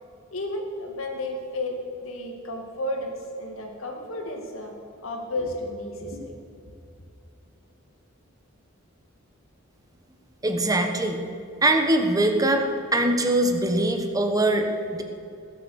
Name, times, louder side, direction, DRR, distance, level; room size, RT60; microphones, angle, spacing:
voice 1, 0.3-4.7 5.0-6.4, left 1 dB, 80° left, 3 dB, 2.1 m, -32 dB
voice 2, 10.4-11.3 11.6-12.6 12.9-15.0, right 1 dB, 20° right, 4 dB, 1.3 m, -22 dB
19.5 x 8.1 x 6.5 m, 2.5 s
head